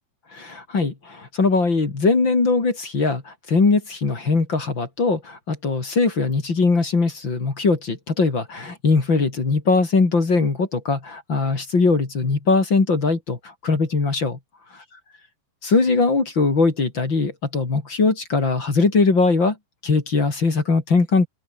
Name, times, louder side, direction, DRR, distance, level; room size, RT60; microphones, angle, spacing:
voice 1, 0.3-14.4 15.6-19.6 19.8-21.3, left 3 dB, 30° left, 3.6 m, -20 dB
open air
omnidirectional pair, 5.1 m